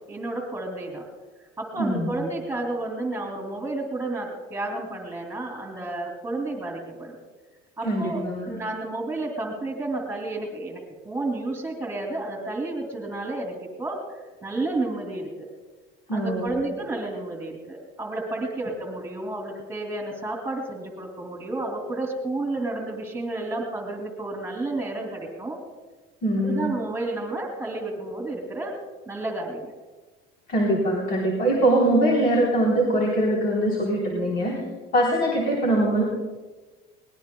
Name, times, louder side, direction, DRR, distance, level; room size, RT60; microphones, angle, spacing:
voice 1, 0.1-1.0 1.6-7.2 7.8-14.0 14.4-15.5 16.1-25.6 26.4-28.7 29.1-29.7, right 2 dB, 10° right, 1 dB, 2.7 m, -31 dB
voice 2, 1.8-2.1 7.8-8.6 16.1-16.6 26.2-26.7 30.5-34.5 34.9-36.0, right 1 dB, 45° left, -2 dB, 3.8 m, -22 dB
22.5 x 19.5 x 2.3 m, 1.3 s
cardioid pair, 160°, 21 cm